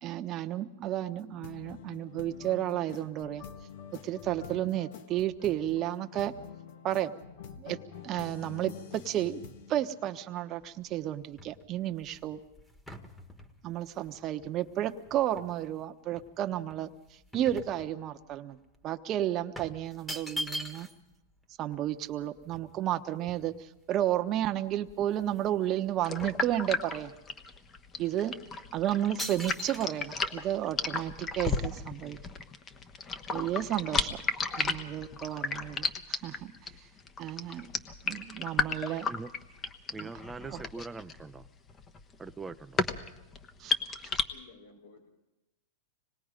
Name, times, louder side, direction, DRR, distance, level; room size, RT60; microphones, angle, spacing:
voice 1, 0.0-3.4 4.0-6.3 6.8-7.1 7.6-7.8 8.0-9.4 9.7-12.4 13.6-16.9 17.3-18.6 18.8-20.9 21.6-27.1 28.0-28.3 28.7-32.2 33.3-34.2 34.6-36.5 37.2-37.7 38.0-39.1 40.0-40.1 40.5-40.6 43.6-43.7, right 12 dB, 35° right, 9 dB, 1.1 m, -32 dB
sound 1, 1.2-10.8, left 7 dB, 65° left, 1.6 m, -47 dB
sound 2, 10.6-15.7 16.2-18.3 18.6-18.8 19.5-21.1 21.4-21.5 21.7-23.9 24.4-24.5 24.8-25.6 25.8-27.1 27.6-27.8 28.4-28.7 29.2-29.9, equal, 5° left, 1.6 m, -43 dB
sound 3, 26.0-44.2, left 4 dB, 25° left, 1.2 m, -34 dB
voice 2, 39.9-41.5 42.2-42.8, right 4 dB, 10° right, 10 dB, 0.7 m, -42 dB
voice 3, 44.3-45.1, left 4 dB, 85° left, 3 dB, 5.2 m, -54 dB
25.5 x 20.0 x 5.2 m, 0.94 s
hypercardioid pair, 130°, 0 cm